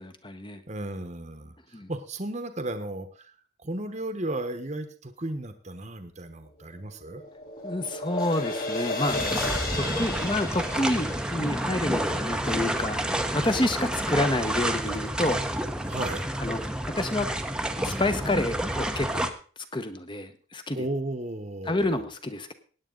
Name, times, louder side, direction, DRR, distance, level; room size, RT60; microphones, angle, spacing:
voice 1, 0.0-0.6 1.7-1.9 7.6-9.2 9.7-15.4 16.4-16.6 16.8-17.3 17.8-19.3 19.7-20.9 21.6-22.5, left 1 dB, 25° left, 9 dB, 1.0 m, -29 dB
voice 2, 0.7-3.3 3.6-7.2 9.7-10.1 15.8-16.3 20.7-22.1, right 1 dB, 35° right, 8 dB, 1.1 m, -35 dB
sound 1, 6.6-12.9, left 2 dB, 45° left, 3.6 m, -34 dB
sound 2, 9.1-19.3, right 1 dB, 5° right, 0.8 m, -29 dB
16.5 x 9.7 x 3.9 m, 0.40 s
head